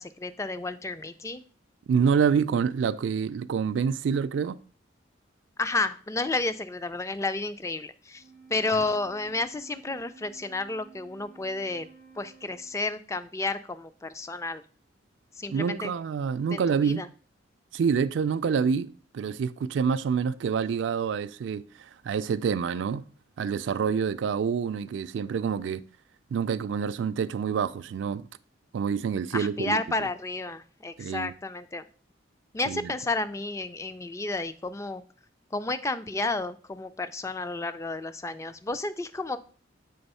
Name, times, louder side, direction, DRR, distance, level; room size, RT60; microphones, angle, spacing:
voice 1, 0.0-1.4 5.6-8.2 8.5-11.9 12.2-14.6 15.4-15.9 16.5-17.1 29.3-31.8 32.5-35.0 35.5-39.4, left 2 dB, 15° left, 0.3 m, -31 dB
voice 2, 1.9-4.6 15.5-17.1 17.7-23.0 23.4-25.8 26.3-28.3 28.7-30.1 31.0-31.3 32.7-32.9, right 6 dB, 75° right, 0.3 m, -27 dB
Wind instrument woodwind instrument, 8.1-12.9, right 5 dB, 60° left, 1.5 m, -53 dB
7.0 x 3.5 x 5.4 m
head